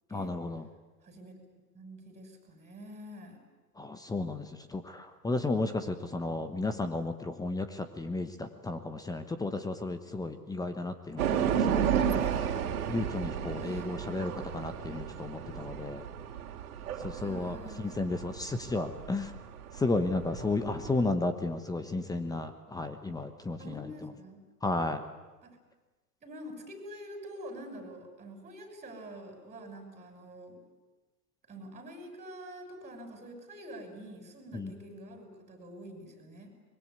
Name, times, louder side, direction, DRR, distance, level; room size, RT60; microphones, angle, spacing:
voice 1, 0.1-0.7 3.8-12.3 12.9-16.0 17.0-19.3 19.7-24.1 24.6-25.0 34.5-34.7, left 2 dB, 10° left, 9 dB, 1.1 m, -33 dB
voice 2, 1.0-1.4 1.7-3.4 5.7-6.0 13.6-13.9 17.1-18.0 20.8-21.1 23.6-24.4 25.4-25.6 26.2-30.6 31.5-36.5, right 1 dB, 15° right, 5 dB, 6.1 m, -46 dB
sound 1, 11.2-21.0, right 8 dB, 60° right, 3.0 m, -33 dB
24.0 x 21.5 x 9.6 m, 1.2 s
hypercardioid pair, 115°, 48 cm